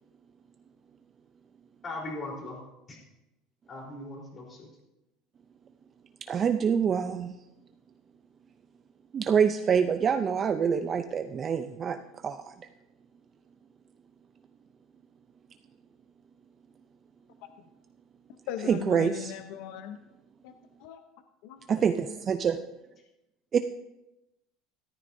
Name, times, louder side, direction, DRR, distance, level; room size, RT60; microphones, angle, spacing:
voice 1, 1.8-2.6 2.9-3.0 3.7-4.7, left 2 dB, 25° left, -2 dB, 3.7 m, -39 dB
voice 2, 6.2-7.3 9.1-12.7 18.6-19.3 21.7-22.6 23.5-23.6, right 7 dB, 25° right, 8 dB, 0.4 m, -26 dB
voice 3, 18.5-20.0 20.4-21.0 21.4-21.6, left 10 dB, 70° left, 8 dB, 0.7 m, -39 dB
14.5 x 13.0 x 2.7 m, 0.96 s
cardioid pair, 150°, 0 cm